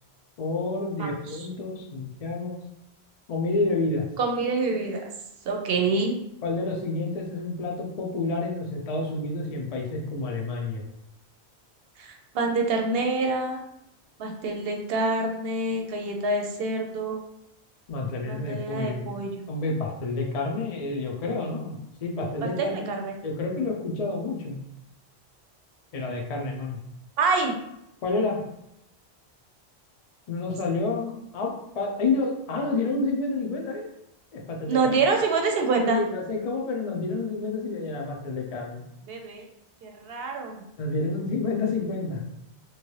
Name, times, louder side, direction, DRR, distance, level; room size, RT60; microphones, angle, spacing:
voice 1, 0.4-2.6 3.3-4.1 6.4-10.8 17.9-19.1 19.5-22.9 23.2-24.6 25.9-26.8 28.0-28.4 30.3-33.8 34.3-34.9 35.8-38.8 40.8-42.2, left 3 dB, 45° left, 0 dB, 0.6 m, -29 dB
voice 2, 1.0-1.5 4.2-5.1 5.5-6.2 12.0-13.6 14.2-17.2 18.2-19.5 22.4-23.1 27.2-27.5 34.7-36.0 39.1-39.5 39.8-40.6, right 3 dB, 65° right, 3 dB, 0.8 m, -26 dB
3.0 x 2.6 x 3.1 m, 0.81 s
omnidirectional pair, 1.1 m